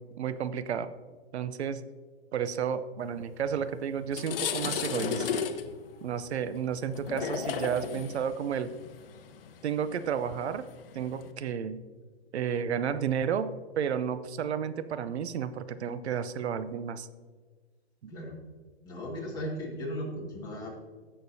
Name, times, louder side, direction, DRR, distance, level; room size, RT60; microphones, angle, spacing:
voice 1, 0.2-0.9 1.3-1.9 2.3-5.5 6.0-8.7 9.6-10.7 10.9-11.8 12.3-17.1 18.0-18.1, right 8 dB, 90° right, 13 dB, 0.7 m, -32 dB
sound 1, 3.5-3.6 4.0-11.3, left 7 dB, 60° left, 0.9 m, -35 dB
voice 2, 18.8-20.7, equal, 10° left, -4 dB, 1.9 m, -37 dB
16.0 x 6.7 x 2.7 m, 1.4 s
hypercardioid pair, 155°, 32 cm